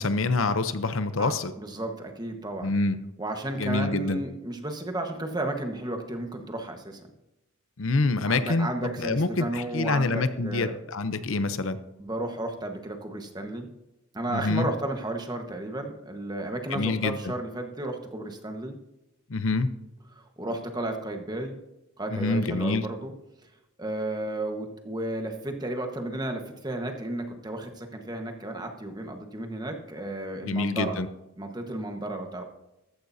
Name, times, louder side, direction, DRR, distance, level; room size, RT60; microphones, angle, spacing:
voice 1, 0.0-1.5 2.6-3.0 3.6-4.2 7.8-11.8 14.3-14.7 16.7-17.3 19.3-19.7 22.1-22.8 30.4-31.1, left 3 dB, 75° left, 11 dB, 0.8 m, -26 dB
voice 2, 1.6-2.8 3.2-7.0 8.3-10.8 12.0-13.7 14.1-18.8 20.1-21.5 22.0-23.1 23.8-31.0 31.4-32.4, right 1 dB, 20° right, 4 dB, 1.3 m, -33 dB
14.5 x 13.5 x 2.8 m, 0.94 s
head